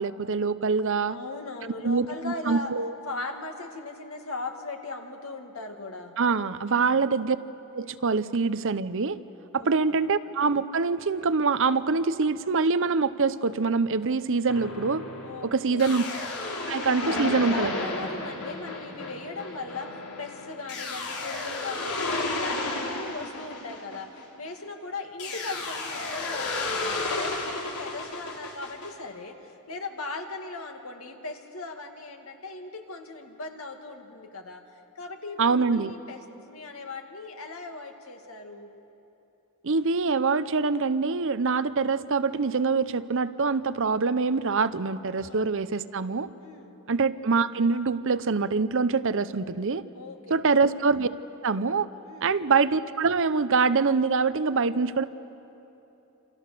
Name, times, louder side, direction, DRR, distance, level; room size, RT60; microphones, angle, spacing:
voice 1, 0.0-1.2 1.8-2.9 6.2-7.4 7.7-9.2 9.5-15.0 15.4-16.0 16.7-17.7 35.4-35.9 39.6-46.3 46.9-49.8 50.3-51.1 51.4-51.9 52.2-55.0, right 4 dB, 60° right, 14 dB, 0.7 m, -24 dB
voice 2, 1.1-2.7 3.1-6.2 6.7-7.0 9.5-10.0 15.2-16.0 17.0-34.6 34.9-38.7 45.2-45.5 46.4-46.8 50.0-50.5 52.0-52.4, left 3 dB, 65° left, 4 dB, 2.3 m, -38 dB
sound 1, 14.5-24.6 25.2-28.9, left 2 dB, 90° left, 4.2 m, -33 dB
28.0 x 27.5 x 6.8 m, 3.0 s
head